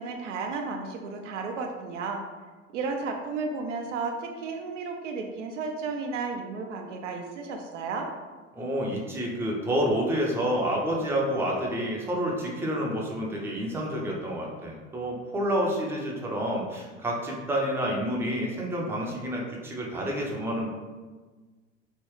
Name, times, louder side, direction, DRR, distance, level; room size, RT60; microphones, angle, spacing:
voice 1, 0.0-2.2 2.7-8.1, right 4 dB, 65° right, 3 dB, 0.5 m, -33 dB
voice 2, 8.5-20.7, equal, 5° right, -2 dB, 0.6 m, -29 dB
3.2 x 3.0 x 3.1 m, 1.3 s
figure-of-eight pair, 70°, 40 cm